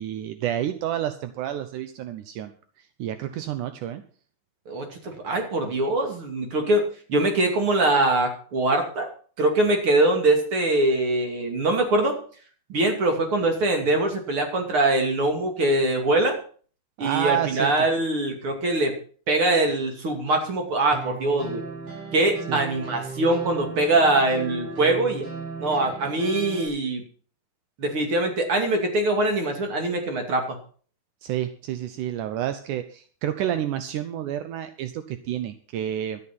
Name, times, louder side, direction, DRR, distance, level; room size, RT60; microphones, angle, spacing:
voice 1, 0.0-2.5 2.8-4.0 17.0-17.9 22.5-22.6 31.2-36.2, right 11 dB, 75° right, 10 dB, 1.9 m, -29 dB
voice 2, 4.7-6.8 7.1-9.1 9.4-12.2 12.7-16.4 17.0-18.9 19.3-21.6 22.1-25.3 25.6-27.0 27.8-30.6, right 2 dB, 35° right, 4 dB, 3.0 m, -23 dB
sound 1, 20.9-26.7, right 4 dB, 60° right, 7.5 m, -36 dB
12.5 x 11.0 x 5.9 m, 0.43 s
omnidirectional pair, 4.6 m